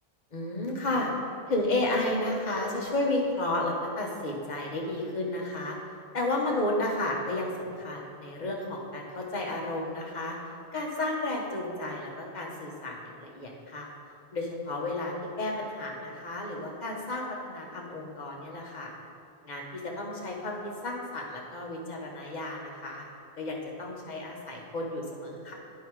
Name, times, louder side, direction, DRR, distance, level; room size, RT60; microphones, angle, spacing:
voice 1, 0.3-1.1 1.5-5.8 6.1-10.4 10.7-13.9 14.3-18.9 19.4-23.0 23.4-25.5, left 2 dB, 45° left, -1 dB, 1.2 m, -32 dB
9.3 x 4.7 x 4.7 m, 2.4 s
omnidirectional pair, 1.1 m